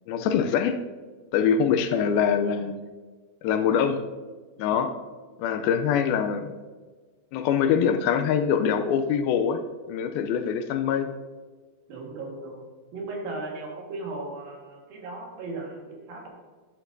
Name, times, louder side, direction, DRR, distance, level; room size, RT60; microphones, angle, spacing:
voice 1, 0.1-0.8 1.3-2.8 3.4-4.0 4.6-4.9 5.4-6.5 7.3-9.6 9.9-11.1, left 7 dB, 80° left, 8 dB, 2.3 m, -24 dB
voice 2, 11.9-12.6 12.9-16.3, right 2 dB, 70° right, 0 dB, 3.3 m, -36 dB
12.0 x 10.0 x 2.6 m, 1.4 s
omnidirectional pair, 4.4 m